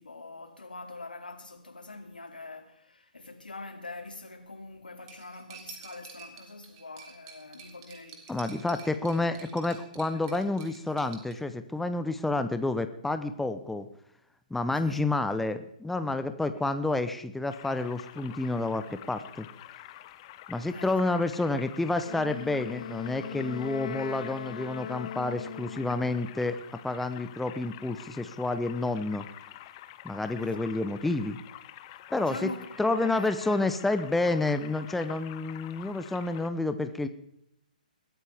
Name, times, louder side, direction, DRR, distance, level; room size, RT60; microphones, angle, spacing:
voice 1, 0.0-8.5 10.1-10.2 14.8-15.0 20.7-21.0 30.4-31.0 32.2-33.6, left 3 dB, 85° left, 2.6 m, -44 dB
Cutlery silverware, 5.1-11.3, right 7 dB, 35° right, 3.5 m, -50 dB
voice 2, 8.3-13.9 14.5-19.5 20.5-26.6 26.8-29.3 30.0-31.4 32.1-32.5 32.8-37.1, left 2 dB, 5° left, 0.7 m, -29 dB
sound 1, 17.5-36.5, left 14 dB, 35° left, 1.0 m, -48 dB
Wind instrument woodwind instrument, 22.0-26.3, left 9 dB, 55° left, 0.7 m, -39 dB
21.5 x 13.5 x 3.5 m
figure-of-eight pair, 130°, 5 cm